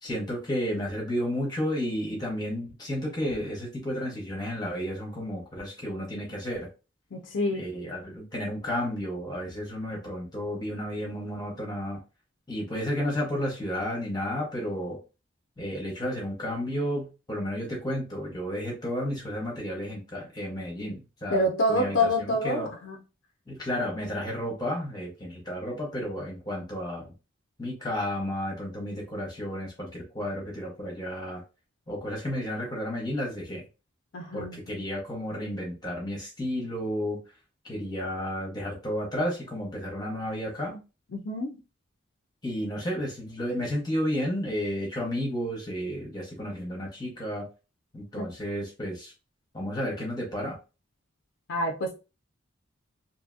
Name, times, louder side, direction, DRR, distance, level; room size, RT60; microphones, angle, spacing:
voice 1, 0.0-6.7 7.5-12.0 12.5-15.0 15.6-22.7 23.5-27.1 27.6-31.4 31.9-33.6 34.3-37.2 37.7-40.8 42.4-47.5 47.9-49.1 49.5-50.6, equal, 20° left, 0.8 m, -32 dB
voice 2, 7.1-7.7 21.3-23.0 34.1-34.6 41.1-41.6 51.5-52.0, left 1 dB, 70° left, 0.4 m, -27 dB
2.7 x 2.7 x 2.3 m
head